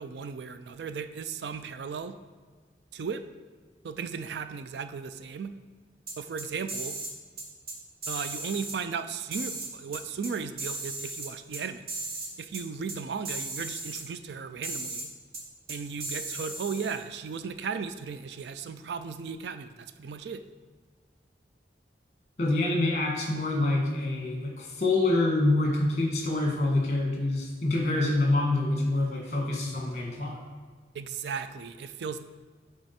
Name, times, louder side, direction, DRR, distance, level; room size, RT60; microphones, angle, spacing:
voice 1, 0.0-2.2 2.9-3.2 3.8-5.5 6.2-7.0 8.1-11.8 12.4-15.1 15.7-20.4 30.9-32.2, right 6 dB, 80° right, 11 dB, 0.4 m, -36 dB
sound 1, 6.1-7.1 7.4-7.7 8.0-8.8 9.3-10.3 10.6-11.6 11.9-12.3 12.5-12.6 12.9-13.0 13.2-14.0 14.6-15.1 15.3-15.4 15.7-17.0, right 2 dB, 60° right, 1.3 m, -36 dB
voice 2, 22.4-30.4, left 2 dB, 40° left, -1 dB, 1.5 m, -26 dB
7.9 x 3.5 x 4.3 m, 1.5 s
head